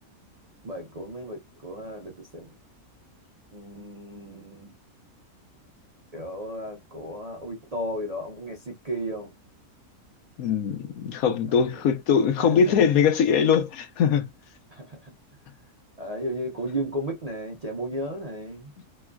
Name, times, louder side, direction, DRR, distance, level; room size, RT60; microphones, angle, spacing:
voice 1, 0.6-2.5 3.5-4.7 6.1-9.3 11.5-11.7 12.4-13.0 14.7-15.1 16.0-18.7, right 1 dB, 40° right, 0.5 m, -34 dB
voice 2, 10.4-14.3, left 7 dB, 75° left, 1.1 m, -22 dB
3.5 x 3.0 x 2.2 m
omnidirectional pair, 1.6 m